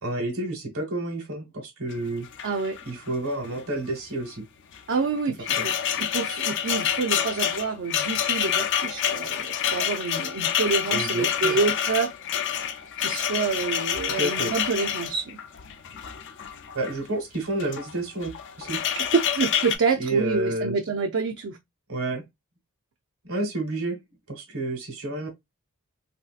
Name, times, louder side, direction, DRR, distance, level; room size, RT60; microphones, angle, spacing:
voice 1, 0.0-2.3 2.9-4.4 5.6-5.7 10.9-11.6 14.2-14.5 16.7-18.8 20.0-20.7 21.9-22.2 23.2-24.0 24.3-25.3, right 1 dB, 75° right, 1.3 m, -30 dB
sound 1, 1.9-2.0 2.2-3.1 3.3-3.6 4.7-17.0 17.5-17.9 18.2-19.8, left 9 dB, 55° left, 0.4 m, -28 dB
voice 2, 2.4-2.8 4.9-12.1 13.0-15.4 19.0-21.6, right 4 dB, 55° right, 0.4 m, -27 dB
3.1 x 2.7 x 2.3 m
head